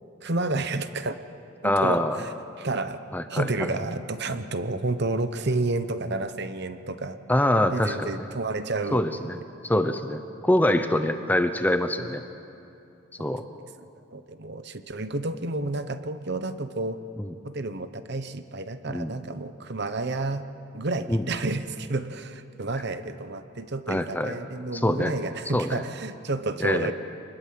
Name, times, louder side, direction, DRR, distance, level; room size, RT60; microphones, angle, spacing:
voice 1, 0.2-1.2 1.6-2.3 2.6-3.0 3.3-7.2 7.7-9.3 13.2-13.3 13.8-17.0 17.4-20.4 20.7-26.9, right 2 dB, 50° right, 10 dB, 1.0 m, -30 dB
voice 2, 1.6-2.2 3.1-3.7 7.3-8.1 8.9-9.4 9.6-12.2 13.2-13.4 17.2-17.3 18.9-19.1 21.1-21.3 23.9-24.3 24.7-25.1 25.5-25.8 26.6-26.9, left 1 dB, 10° left, 8 dB, 0.8 m, -24 dB
26.5 x 20.5 x 7.7 m, 2.7 s
head